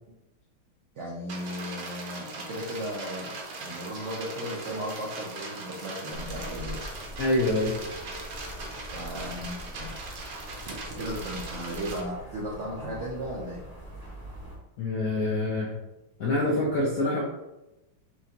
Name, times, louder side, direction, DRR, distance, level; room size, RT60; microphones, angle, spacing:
voice 1, 0.9-3.3 3.6-7.0 8.9-13.6, equal, 80° right, -3 dB, 0.6 m, -36 dB
sound 1, 1.3-12.0, right 3 dB, 60° right, 1.0 m, -40 dB
sound 2, 6.1-14.6, equal, 20° right, 0.6 m, -43 dB
voice 2, 7.2-7.8 14.8-15.7 16.2-17.2, left 2 dB, 70° left, -3 dB, 0.8 m, -25 dB
5.9 x 2.5 x 2.8 m, 0.99 s
omnidirectional pair, 2.2 m